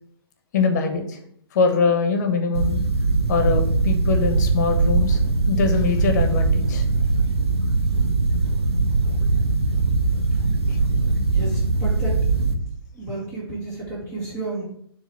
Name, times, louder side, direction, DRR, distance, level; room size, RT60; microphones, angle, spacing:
voice 1, 0.5-1.2 1.5-2.8 3.3-5.2 5.5-6.8, left 4 dB, 45° left, 5 dB, 1.2 m, -22 dB
sound 1, 2.5-12.5, right 3 dB, 85° right, 1.0 m, -21 dB
voice 2, 11.3-12.2 12.9-14.6, right 2 dB, 20° right, -5 dB, 2.1 m, -32 dB
7.0 x 3.6 x 6.0 m, 0.68 s
figure-of-eight pair, 125°, 13 cm